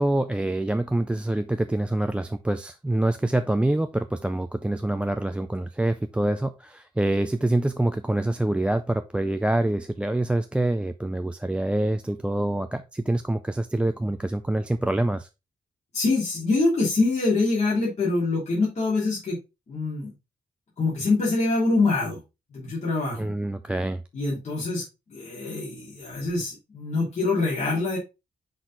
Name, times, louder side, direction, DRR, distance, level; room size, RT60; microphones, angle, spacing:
voice 1, 0.0-15.3 23.2-24.0, right 1 dB, 5° right, 0.4 m, -26 dB
voice 2, 15.9-19.4 19.7-20.1 20.8-22.2 22.5-23.3 24.1-24.8 25.1-28.0, left 3 dB, 45° left, 3.0 m, -25 dB
6.3 x 4.0 x 3.9 m
wide cardioid pair, 140°, 16 cm